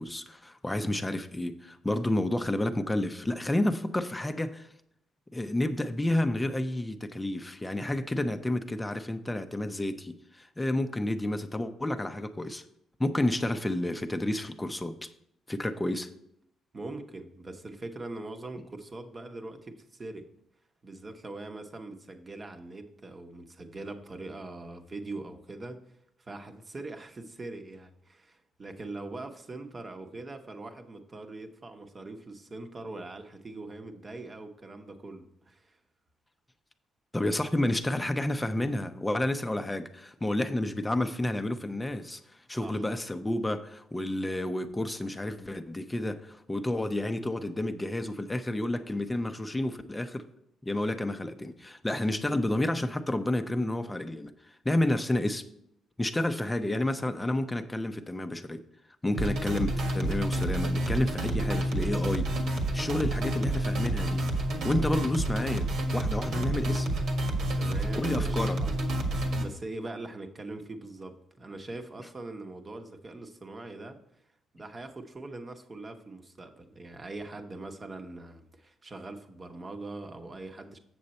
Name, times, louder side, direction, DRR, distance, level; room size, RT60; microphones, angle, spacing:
voice 1, 0.0-4.7 5.3-12.6 13.0-15.1 15.5-16.1 37.1-42.2 42.5-50.3 50.6-54.3 54.6-55.4 56.0-58.6 59.0-62.3 62.7-64.3 64.6-66.9 68.0-68.6, left 1 dB, 15° left, 0.7 m, -30 dB
voice 2, 16.7-20.3 20.8-25.8 26.2-35.8 42.6-42.9 67.5-69.0 69.4-74.0 74.5-80.8, right 2 dB, 30° right, 1.0 m, -42 dB
sound 1, 59.1-69.4, right 1 dB, 70° right, 1.5 m, -29 dB
7.8 x 6.7 x 4.2 m
cardioid pair, 90°, 0 cm